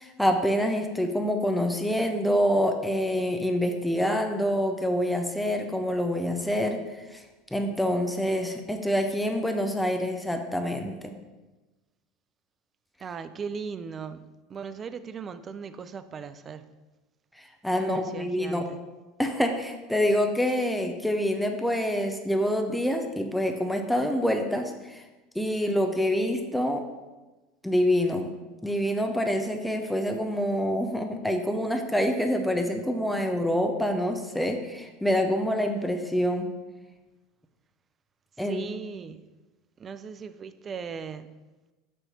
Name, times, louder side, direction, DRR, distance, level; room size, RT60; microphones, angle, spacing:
voice 1, 0.0-7.2 7.5-11.2 17.4-18.6 19.2-25.0 25.3-26.8 27.6-28.3 28.6-36.5 38.4-38.7, equal, 5° left, 5 dB, 0.7 m, -26 dB
voice 2, 13.0-14.2 14.5-16.7 17.8-18.8 38.4-39.2 39.8-41.3, right 6 dB, 30° right, 11 dB, 0.4 m, -38 dB
7.6 x 3.1 x 5.6 m, 1.2 s
figure-of-eight pair, 75°, 0 cm